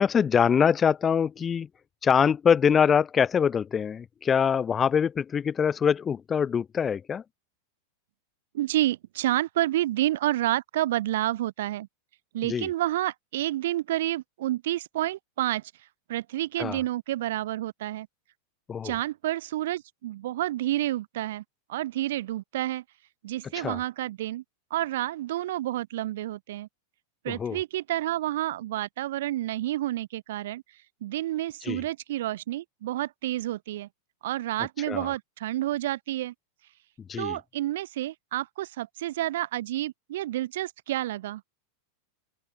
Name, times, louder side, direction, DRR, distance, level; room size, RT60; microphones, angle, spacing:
voice 1, 0.0-1.7 2.0-7.2 12.4-12.7 16.6-16.8 18.7-18.9 23.5-23.8 27.3-27.6 31.6-31.8 34.9-35.1 37.1-37.4, left 7 dB, 20° left, 0.9 m, -24 dB
voice 2, 8.5-11.9 12.3-15.7 16.1-18.1 18.8-21.4 21.7-22.8 23.2-24.4 24.7-26.7 27.2-30.6 31.0-33.9 34.2-36.3 37.2-41.4, right 14 dB, 55° right, 3.5 m, -29 dB
figure-of-eight pair, 90°, 0 cm